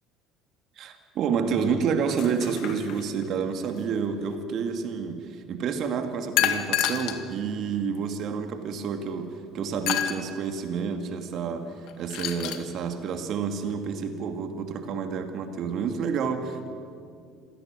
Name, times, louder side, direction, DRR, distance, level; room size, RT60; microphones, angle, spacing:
voice 1, 0.8-16.7, right 6 dB, 55° right, 6 dB, 2.6 m, -29 dB
sound 1, 2.1-3.2 6.4-7.2 7.9-8.0 9.9-10.2 11.9-12.6, left 11 dB, 65° left, 1.8 m, -28 dB
27.5 x 17.0 x 7.7 m, 2.4 s
hypercardioid pair, 65°, 0 cm